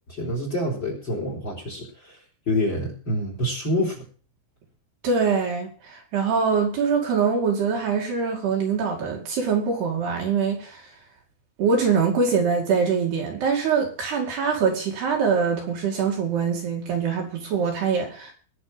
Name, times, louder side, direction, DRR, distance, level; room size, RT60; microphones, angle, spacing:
voice 1, 0.1-2.2 2.5-4.0, left 1 dB, 25° left, 3.8 m, -27 dB
voice 2, 5.0-10.9 11.6-18.3, right 5 dB, 60° right, 4.2 m, -23 dB
20.5 x 7.0 x 5.1 m
omnidirectional pair, 5.7 m